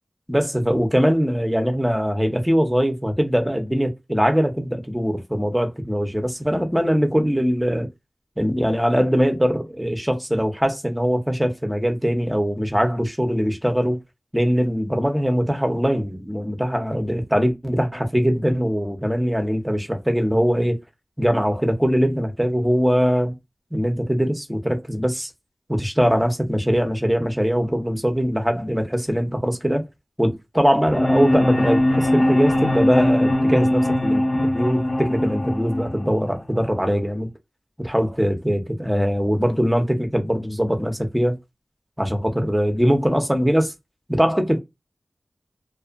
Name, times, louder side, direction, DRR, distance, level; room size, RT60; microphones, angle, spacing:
voice 1, 0.3-7.9 8.4-14.0 14.3-20.8 21.2-23.4 23.7-25.3 25.7-29.8 30.2-37.3 37.8-41.4 42.0-43.7 44.1-44.6, equal, 5° right, 0.7 m, -21 dB
sound 1, 30.9-36.9, left 1 dB, 65° left, 1.2 m, -21 dB
2.5 x 2.4 x 2.4 m
cardioid pair, 45°, 0 cm